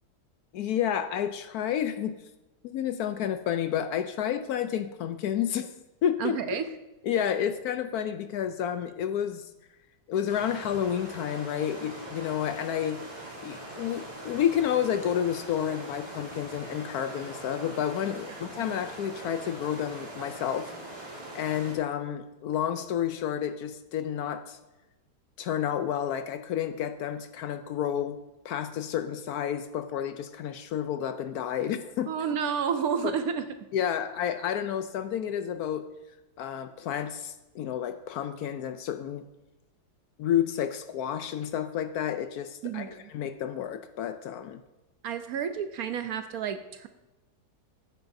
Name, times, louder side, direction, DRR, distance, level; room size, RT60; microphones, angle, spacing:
voice 1, 0.5-2.2 2.6-5.7 6.0-6.4 7.1-9.5 10.1-13.0 13.4-20.7 21.1-24.6 25.4-28.2 28.4-32.1 33.7-35.9 36.4-39.2 40.2-44.6, left 9 dB, 70° left, 9 dB, 1.0 m, -30 dB
voice 2, 6.2-6.7 18.3-18.6 32.1-33.4 42.6-43.1 45.0-46.9, right 7 dB, 70° right, 9 dB, 1.0 m, -31 dB
sound 1, 10.3-21.8, right 1 dB, 20° right, 2.6 m, -42 dB
15.0 x 9.0 x 2.6 m, 1.0 s
omnidirectional pair, 1.8 m